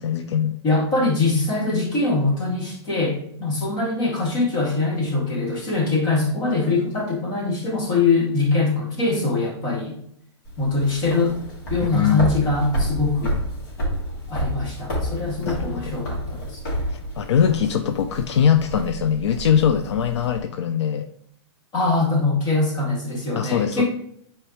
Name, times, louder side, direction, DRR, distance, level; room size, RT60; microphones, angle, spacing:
voice 1, 0.0-0.5 11.9-12.3 15.5-15.9 16.9-21.1 23.4-23.8, left 8 dB, 75° left, 8 dB, 0.6 m, -22 dB
voice 2, 0.6-10.0 10.6-11.4 11.7-13.4 14.3-16.6 21.7-23.8, left 3 dB, 25° left, -3 dB, 2.2 m, -22 dB
sound 1, 10.5-20.4, equal, 45° left, 2.6 m, -30 dB
8.1 x 4.4 x 3.0 m, 0.70 s
hypercardioid pair, 160°, 15 cm